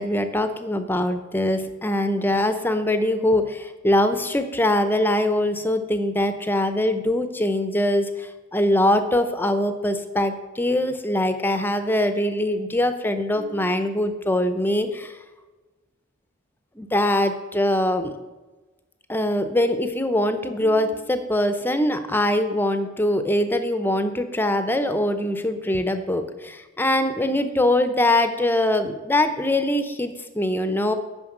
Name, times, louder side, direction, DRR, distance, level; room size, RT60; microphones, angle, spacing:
voice 1, 0.0-8.1 8.5-15.1 16.8-18.1 19.1-30.9, left 1 dB, 10° left, 9 dB, 0.6 m, -22 dB
9.6 x 5.8 x 7.3 m, 1.2 s
head